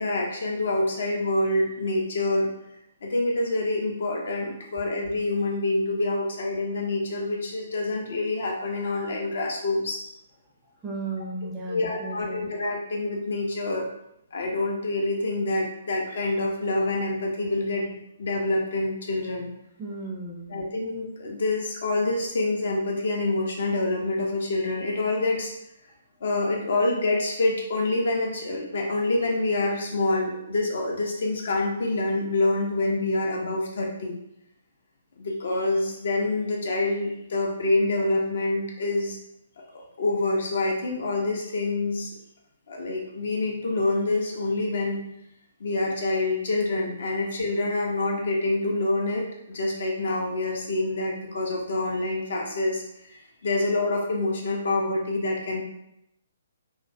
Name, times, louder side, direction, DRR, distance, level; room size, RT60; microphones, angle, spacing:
voice 1, 0.0-2.5 3.0-10.0 11.7-13.9 14.3-19.5 20.5-25.5 26.2-34.2 35.2-39.2 39.7-42.1 42.7-45.0 45.6-55.6, left 2 dB, 60° left, 0 dB, 0.5 m, -26 dB
voice 2, 10.8-12.4 19.8-20.6, right 2 dB, 10° right, -4 dB, 0.5 m, -35 dB
2.2 x 2.1 x 2.6 m, 0.79 s
figure-of-eight pair, 130°, 0 cm